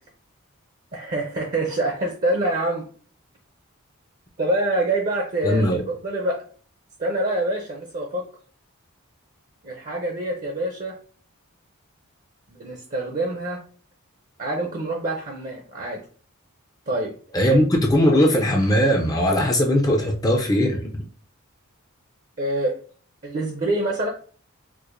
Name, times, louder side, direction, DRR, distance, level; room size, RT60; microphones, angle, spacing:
voice 1, 0.9-2.9 4.4-6.4 7.0-8.3 9.6-11.0 12.6-13.6 14.4-16.0 16.9-17.1 17.4-17.6 22.4-22.8 23.2-24.1, right 1 dB, 40° right, 1 dB, 0.5 m, -26 dB
voice 2, 5.4-5.8 17.3-21.0, equal, 15° left, 1 dB, 0.4 m, -19 dB
4.6 x 2.1 x 2.5 m, 0.42 s
head